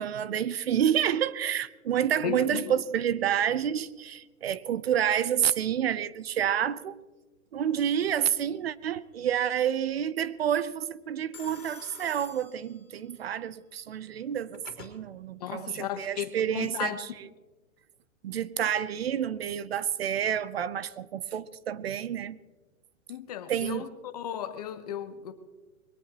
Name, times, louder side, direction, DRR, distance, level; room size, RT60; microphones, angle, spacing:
voice 1, 0.0-7.0 7.5-17.1 18.2-22.4 23.5-23.8, right 9 dB, 50° right, 0.7 m, -29 dB
voice 2, 2.2-2.7 15.4-17.0 23.1-23.9 24.1-25.3, left 10 dB, 30° left, 1.0 m, -35 dB
Telephone, 7.7-8.3 11.3-13.2 14.2-14.9, left 7 dB, 50° left, 3.5 m, -49 dB
22.0 x 18.0 x 2.9 m
hypercardioid pair, 170°, 41 cm